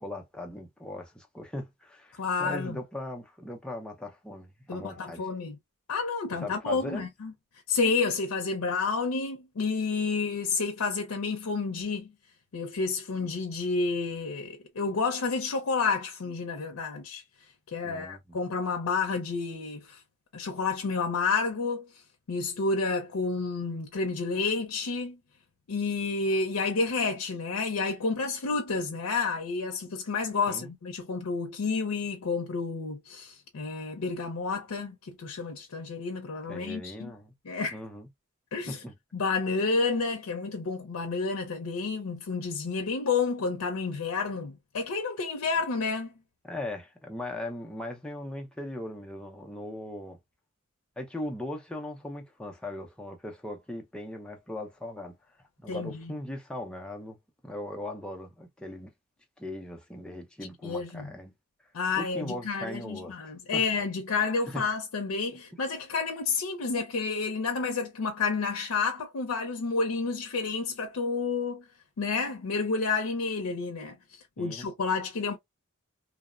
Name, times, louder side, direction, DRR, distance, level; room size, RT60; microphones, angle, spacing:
voice 1, 0.0-5.2 6.4-7.0 17.8-18.4 30.5-30.7 36.4-37.3 37.7-38.1 38.7-38.9 46.4-50.2 51.0-55.2 55.6-57.2 57.4-58.9 59.4-61.3 61.9-63.7 64.5-64.6 74.4-74.7, left 1 dB, 5° left, 0.4 m, -39 dB
voice 2, 2.2-2.8 4.7-5.6 5.9-7.3 7.7-12.1 12.5-17.2 17.7-20.0 20.3-21.9 22.3-25.2 25.7-37.1 37.5-37.8 38.5-38.8 39.1-46.1 55.7-56.1 60.6-61.1 61.7-71.6 72.0-74.0 74.4-75.4, left 4 dB, 80° left, 0.5 m, -30 dB
3.0 x 2.0 x 2.3 m
head